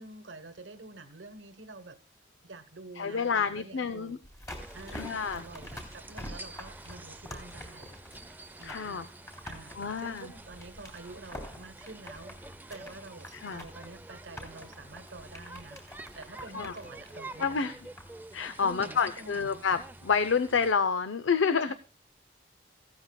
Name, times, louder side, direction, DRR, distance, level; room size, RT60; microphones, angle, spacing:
voice 1, 0.0-2.0 2.4-4.2 4.7-7.9 8.6-9.1 9.4-15.8 16.1-17.8 18.6-19.6 21.6-21.7, right 3 dB, 80° right, 10 dB, 1.1 m, -48 dB
voice 2, 3.0-4.2 4.9-5.4 8.6-9.1 9.8-10.3 13.3-13.7 16.5-16.7 17.4-17.7 18.3-21.7, left 5 dB, 90° left, 12 dB, 0.6 m, -29 dB
sound 1, 4.2-18.2 18.5-18.6, left 1 dB, 20° left, 3.2 m, -47 dB
sound 2, 4.5-20.7, right 2 dB, 10° right, 0.6 m, -48 dB
16.0 x 13.0 x 2.3 m, 0.35 s
head